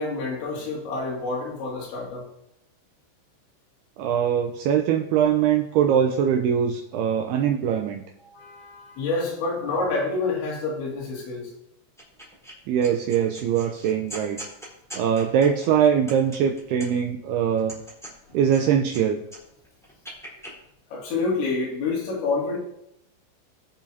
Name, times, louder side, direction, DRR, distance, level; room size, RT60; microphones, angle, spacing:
voice 1, 0.0-2.2 8.2-11.5 18.3-18.4 20.9-22.6, left 3 dB, 75° left, -3 dB, 4.7 m, -28 dB
voice 2, 4.0-8.0 12.7-14.4 15.0-17.8 18.3-19.2, right 8 dB, 80° right, 4 dB, 2.3 m, -22 dB
sound 1, 12.0-12.5 12.8-17.1 17.6-19.0 19.3-20.5, right 1 dB, ahead, 3.0 m, -41 dB
21.5 x 7.2 x 2.8 m, 0.79 s
omnidirectional pair, 5.3 m